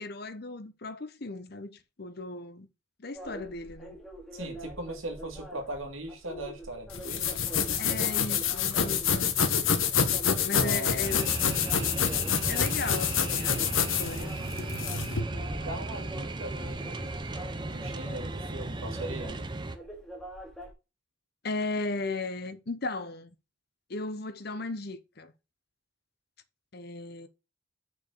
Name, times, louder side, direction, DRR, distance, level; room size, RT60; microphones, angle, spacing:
voice 1, 0.0-2.7 3.0-4.0 7.8-9.7 10.4-11.3 12.5-14.3 21.4-23.3 23.9-25.3 26.7-27.3, left 3 dB, 50° left, 0.9 m, -36 dB
sound 1, 3.1-20.7, right 1 dB, ahead, 1.8 m, -45 dB
voice 2, 4.3-7.4 10.5-11.1 15.4-17.1 17.4-19.4, right 1 dB, 85° right, 2.1 m, -40 dB
sound 2, 6.9-15.2, left 7 dB, 85° left, 1.2 m, -27 dB
sound 3, 11.0-19.8, right 2 dB, 25° right, 0.6 m, -36 dB
5.9 x 4.7 x 6.4 m
head